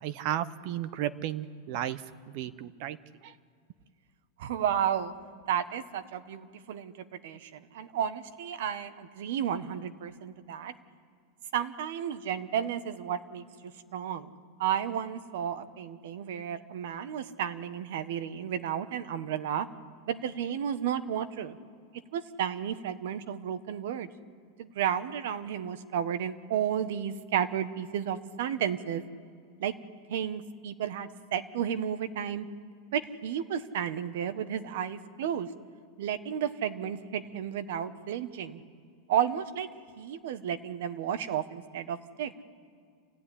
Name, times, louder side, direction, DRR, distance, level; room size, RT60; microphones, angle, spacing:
voice 1, 0.0-2.0 2.3-3.0 3.2-3.3, right 12 dB, 40° right, 14 dB, 0.7 m, -34 dB
voice 2, 4.4-5.1 5.5-10.7 11.5-14.3 14.6-19.7 20.0-21.6 22.1-24.1 24.6-29.0 29.6-29.7 30.1-32.5 32.9-35.5 36.0-38.6 39.1-39.7 40.0-42.3, right 9 dB, 60° right, 11 dB, 1.2 m, -32 dB
27.0 x 16.0 x 10.0 m, 2.2 s
supercardioid pair, 175°, 0 cm